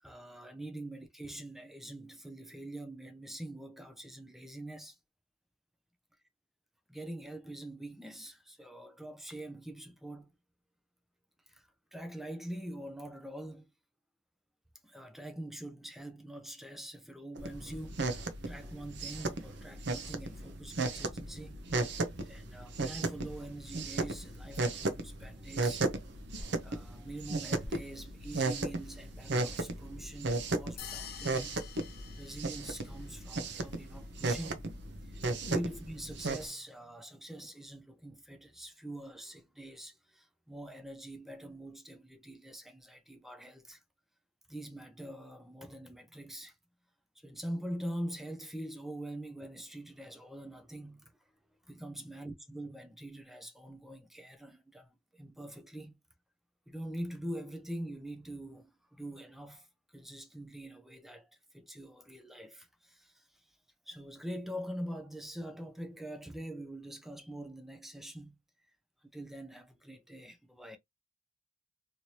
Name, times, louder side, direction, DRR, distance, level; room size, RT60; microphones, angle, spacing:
voice 1, 0.0-5.0 6.9-10.3 11.5-13.7 14.8-25.9 26.6-31.6 32.2-34.6 35.0-43.8 44.5-46.6 47.2-51.1 51.7-56.0 56.7-59.7 59.9-61.3 61.5-63.6 63.9-68.4 69.0-70.8, right 1 dB, ahead, 0.5 m, -44 dB
sound 1, 17.4-36.4, right 2 dB, 60° right, 0.7 m, -35 dB
sound 2, 30.8-33.1, left 9 dB, 50° left, 0.5 m, -47 dB
3.1 x 3.0 x 2.7 m
head